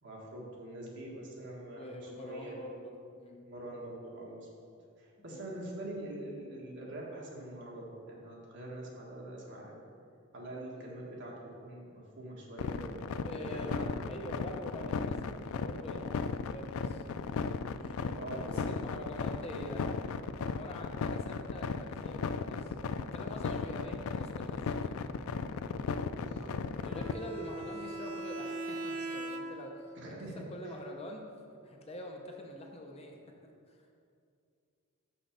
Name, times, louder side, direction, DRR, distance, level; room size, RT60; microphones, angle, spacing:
voice 1, 0.0-2.6 3.4-4.5 5.0-9.8 10.3-14.1 18.2-19.0 26.1-26.5 29.9-30.3, right 1 dB, 55° right, -3 dB, 1.6 m, -44 dB
voice 2, 1.7-2.9 3.2-3.5 5.3-5.5 10.7-10.9 13.2-17.0 17.8-20.0 20.4-25.0 26.8-31.3 31.6-33.2 33.4-33.8, left 1 dB, 30° left, 1 dB, 0.7 m, -45 dB
sound 1, 12.6-27.1, left 5 dB, 75° left, 0.3 m, -35 dB
Bowed string instrument, 26.8-29.8, right 2 dB, 90° right, 0.7 m, -40 dB
6.3 x 6.1 x 5.0 m, 2.4 s
head